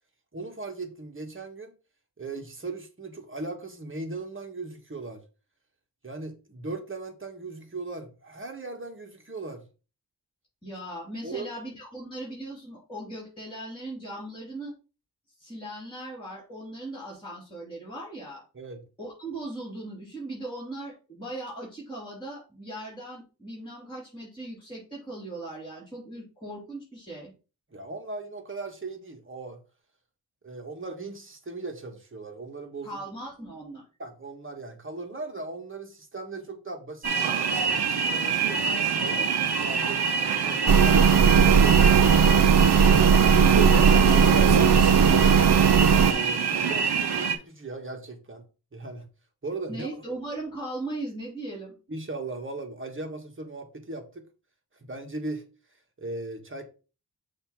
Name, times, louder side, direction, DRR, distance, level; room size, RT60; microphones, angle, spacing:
voice 1, 0.3-1.7 2.2-5.2 6.0-9.6 11.2-11.5 18.5-18.8 27.7-29.6 30.4-33.0 34.0-42.9 45.9-48.4 48.7-49.1 49.4-49.9 51.9-54.3 54.9-55.4 56.0-56.6, right 3 dB, 30° right, 1.4 m, -38 dB
voice 2, 10.6-14.7 15.4-18.4 19.0-27.3 32.8-33.8 49.7-51.7, right 1 dB, 10° left, 3.3 m, -38 dB
sound 1, 37.0-47.4, right 5 dB, 85° right, 0.9 m, -26 dB
sound 2, 40.7-46.1, right 6 dB, 60° right, 0.5 m, -18 dB
6.7 x 2.9 x 5.8 m
wide cardioid pair, 80°, 38 cm